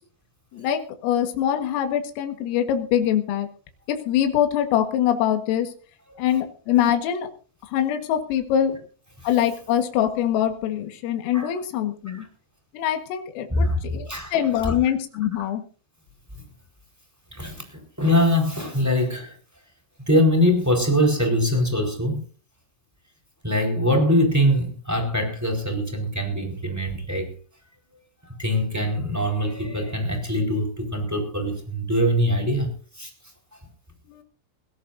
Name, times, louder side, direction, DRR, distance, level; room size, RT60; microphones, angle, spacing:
voice 1, 0.5-3.5 3.9-5.7 6.2-7.3 7.7-8.7 9.2-12.2 12.7-15.6 34.2-34.3, left 10 dB, 85° left, 4.3 m, -23 dB
voice 2, 13.5-14.4 14.6-14.7 15.3-15.5 17.3-19.4 20.1-22.2 23.4-27.3 28.4-32.7 33.0-33.1, equal, 5° right, 3.6 m, -23 dB
21.5 x 16.5 x 2.7 m
omnidirectional pair, 5.8 m